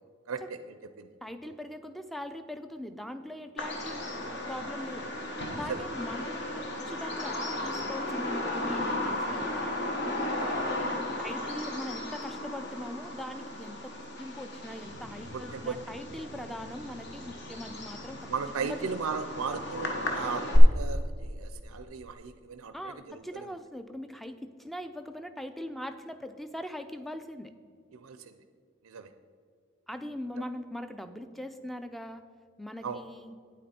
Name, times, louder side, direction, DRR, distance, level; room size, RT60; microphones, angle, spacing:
voice 1, 0.3-1.1 1.5-1.6 5.6-5.8 10.4-10.7 15.3-15.8 18.2-23.5 27.9-28.3 28.8-29.1 32.8-33.0, right 5 dB, 85° right, 9 dB, 0.5 m, -37 dB
voice 2, 1.2-5.1 5.6-9.8 11.2-18.3 18.6-19.2 22.7-27.5 29.9-32.2 32.6-33.4, left 1 dB, ahead, 9 dB, 0.4 m, -41 dB
Bird vocalization bird call bird song, 3.6-20.6, left 1 dB, 55° left, 1.2 m, -35 dB
9.5 x 8.5 x 4.3 m, 2.2 s
head